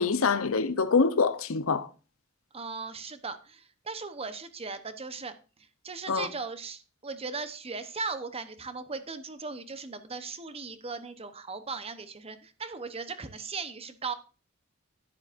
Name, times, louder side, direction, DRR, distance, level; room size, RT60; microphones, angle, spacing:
voice 1, 0.0-1.9 6.1-6.3, left 4 dB, 70° left, 0.8 m, -25 dB
voice 2, 2.5-5.3 5.8-14.1, right 4 dB, 30° right, 0.9 m, -38 dB
12.0 x 10.0 x 2.6 m
head